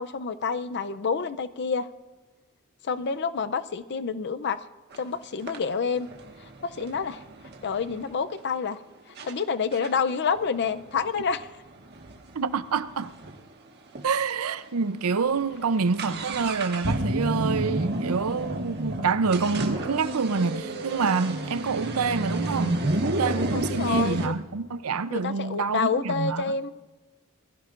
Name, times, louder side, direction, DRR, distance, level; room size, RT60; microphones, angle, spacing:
voice 1, 0.0-1.9 2.8-4.6 5.0-6.1 6.6-7.2 7.6-8.8 9.2-11.5 23.5-24.3 25.1-26.7, left 5 dB, 55° left, 0.5 m, -28 dB
sound 1, 4.9-5.0 5.5-8.1 8.7-8.8 9.2-9.3 9.7-13.4 13.7-13.8 14.0-14.1 14.7-14.8 15.1-24.3, right 1 dB, 50° right, 1.6 m, -30 dB
voice 2, 12.3-13.1 14.0-26.4, right 5 dB, 80° right, 0.6 m, -27 dB
22.5 x 15.5 x 2.5 m
head